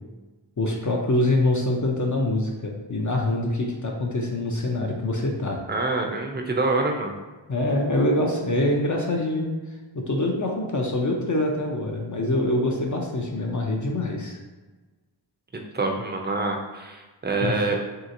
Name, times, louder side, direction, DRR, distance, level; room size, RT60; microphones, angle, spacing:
voice 1, 0.6-5.6 7.5-9.5 9.9-14.4 17.4-17.6, left 1 dB, 40° left, 0 dB, 0.5 m, -25 dB
voice 2, 5.7-7.1 15.7-17.7, right 3 dB, 20° right, 2 dB, 0.4 m, -26 dB
3.1 x 2.8 x 2.6 m, 1.2 s
wide cardioid pair, 55°, 49 cm